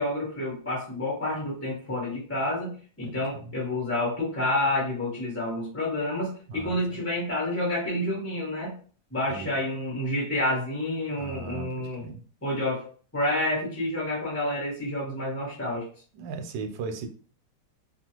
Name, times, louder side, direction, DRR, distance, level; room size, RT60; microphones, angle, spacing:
voice 1, 0.0-8.8 9.1-12.0 12.4-12.8 13.1-15.9, left 1 dB, 10° left, -4 dB, 0.7 m, -29 dB
voice 2, 3.0-3.5 6.5-7.0 9.3-9.6 11.2-12.2 16.1-17.1, right 4 dB, 80° right, 5 dB, 1.2 m, -37 dB
2.9 x 2.4 x 2.9 m, 0.43 s
omnidirectional pair, 1.9 m